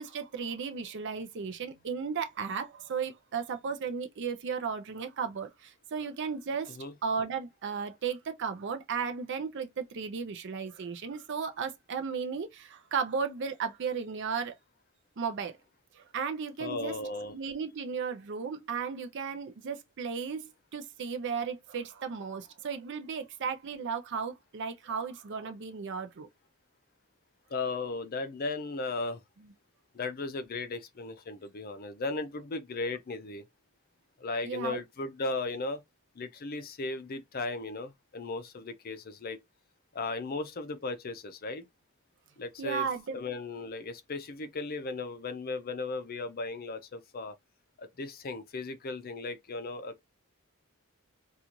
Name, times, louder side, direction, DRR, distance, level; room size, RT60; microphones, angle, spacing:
voice 1, 0.0-6.8 7.0-14.5 15.2-15.6 15.9-16.9 17.3-26.3 34.4-34.8 42.6-43.2, right 6 dB, 55° right, 0.5 m, -35 dB
voice 2, 16.6-17.3 27.5-29.2 29.9-33.4 34.2-35.8 36.2-39.4 39.9-41.6 42.4-47.4 47.8-50.0, left 3 dB, 45° left, 0.5 m, -36 dB
3.8 x 2.4 x 2.9 m
head